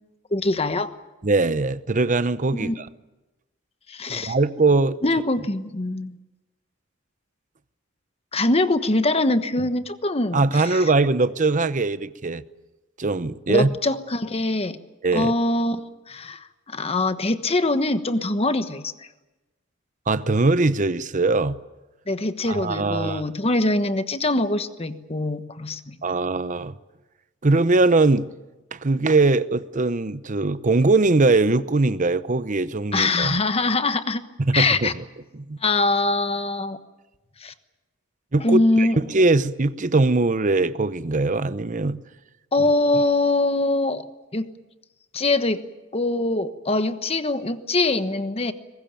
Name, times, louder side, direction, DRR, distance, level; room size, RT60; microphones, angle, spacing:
voice 1, 0.3-0.9 2.5-2.7 3.9-4.3 5.0-6.2 8.3-10.8 13.5-14.8 15.1-18.9 22.1-26.0 32.9-34.2 34.5-34.9 35.6-36.8 37.4-37.5 38.4-39.0 42.5-44.0 44.3-44.4 45.1-45.6 45.9-48.5, left 2 dB, 30° left, 1.2 m, -23 dB
voice 2, 1.2-2.9 4.1-5.0 10.3-12.4 13.0-13.7 15.0-15.3 20.1-21.6 22.5-23.2 26.0-26.7 27.4-28.3 28.7-33.4 34.5-35.0 35.5-35.6 38.3-42.0, right 3 dB, 40° right, 0.8 m, -21 dB
23.0 x 20.5 x 9.1 m
head